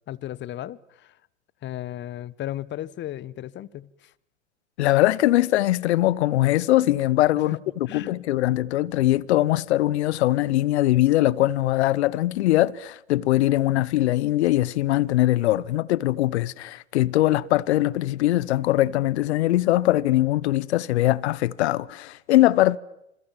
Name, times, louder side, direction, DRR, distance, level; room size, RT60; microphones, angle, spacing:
voice 1, 0.1-1.2 1.6-4.1 7.5-7.6 7.9-8.2, left 13 dB, 30° left, 1.3 m, -35 dB
voice 2, 4.8-22.8, left 15 dB, 65° left, 1.1 m, -21 dB
29.0 x 27.5 x 7.4 m
hypercardioid pair, 100°, 36 cm